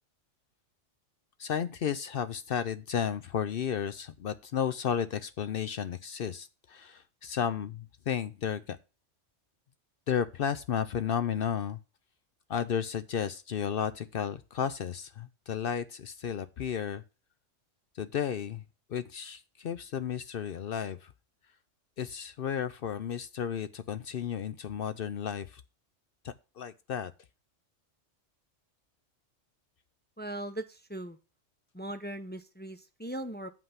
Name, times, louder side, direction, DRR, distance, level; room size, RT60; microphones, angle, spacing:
voice 1, 1.4-8.8 10.1-11.8 12.5-17.0 17.9-18.6 18.9-21.1 22.0-25.6 26.2-27.1, left 8 dB, 60° left, 13 dB, 0.7 m, -33 dB
voice 2, 30.2-31.2 31.7-33.5, right 1 dB, 15° left, 8 dB, 0.4 m, -39 dB
7.4 x 5.6 x 5.7 m, 0.30 s
omnidirectional pair, 1.3 m